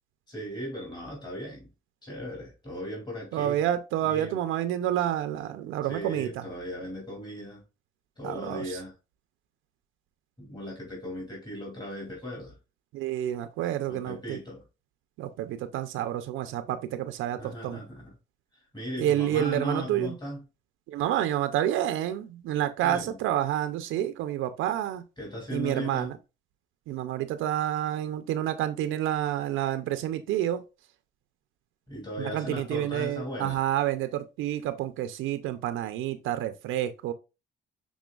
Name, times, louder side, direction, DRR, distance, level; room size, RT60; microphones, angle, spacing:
voice 1, 0.3-1.7 2.0-3.6 4.0-4.4 5.9-7.6 8.2-8.9 10.4-12.5 13.9-14.6 17.4-18.2 18.5-20.5 22.8-23.2 25.2-26.1 31.9-33.6, equal, 20° left, 2.5 m, -37 dB
voice 2, 3.3-6.4 8.2-8.8 12.9-14.4 15.2-17.8 19.0-20.1 20.9-25.0 25.5-26.1 26.9-30.6 32.2-37.1, right 12 dB, 90° right, 0.5 m, -29 dB
6.1 x 3.6 x 2.3 m
cardioid pair, 90°, 20 cm